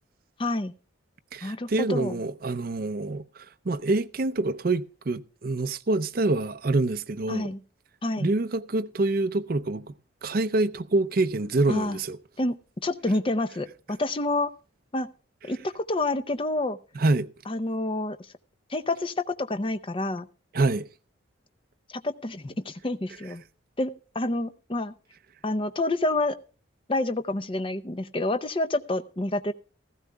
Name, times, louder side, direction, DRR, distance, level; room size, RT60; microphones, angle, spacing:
voice 1, 0.4-0.7 1.4-2.2 7.3-7.6 8.0-8.3 11.7-12.0 12.4-14.5 14.9-15.1 15.5-16.8 17.5-18.2 18.7-20.3 21.9-23.4 23.8-24.9 25.4-26.4 26.9-29.5, left 2 dB, 25° left, 0.6 m, -28 dB
voice 2, 1.3-7.5 8.2-9.8 10.2-12.2 16.9-17.3 20.5-20.9, right 2 dB, 45° right, 0.6 m, -26 dB
16.5 x 14.5 x 2.2 m
head